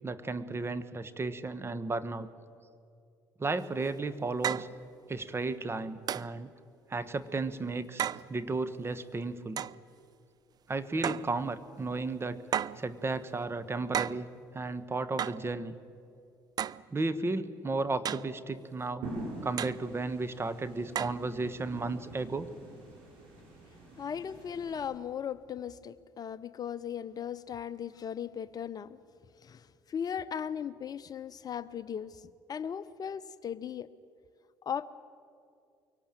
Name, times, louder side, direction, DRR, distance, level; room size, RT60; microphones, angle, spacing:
voice 1, 0.0-2.3 3.4-4.7 5.1-6.5 6.9-9.6 10.7-12.4 12.8-14.3 14.5-15.7 16.9-19.1 19.4-22.5, right 3 dB, 25° right, 12 dB, 1.3 m, -34 dB
sound 1, 3.6-3.7 4.4-4.8 6.1-6.4 8.0-8.3 9.6-9.8 11.0-11.4 12.5-12.9 13.9-14.3 15.2-15.5 16.6-16.9 18.1-18.4 19.6-19.8 21.0-21.2, right 9 dB, 45° right, 0.5 m, -33 dB
sound 2, 19.0-24.9, right 2 dB, 75° right, 6.6 m, -45 dB
voice 2, 24.0-29.0 29.4-32.2 32.5-33.9 34.6-34.9, left 8 dB, 45° left, 15 dB, 0.7 m, -37 dB
24.0 x 18.0 x 9.0 m, 2.4 s
hypercardioid pair, 60°, 9 cm